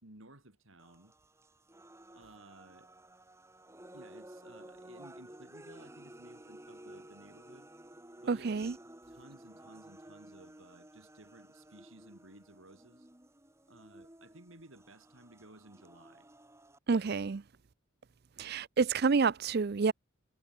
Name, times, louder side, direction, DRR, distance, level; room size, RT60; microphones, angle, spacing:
voice 1, 0.0-1.1 2.1-2.9 3.9-7.7 8.2-8.5 9.1-13.1 13.7-16.3 18.4-18.6, right 1 dB, 70° right, 4.8 m, -56 dB
sound 1, 0.8-16.8, right 1 dB, 15° right, 1.4 m, -54 dB
voice 2, 8.3-8.8 16.9-17.4 18.4-19.9, right 4 dB, 50° right, 0.5 m, -29 dB
head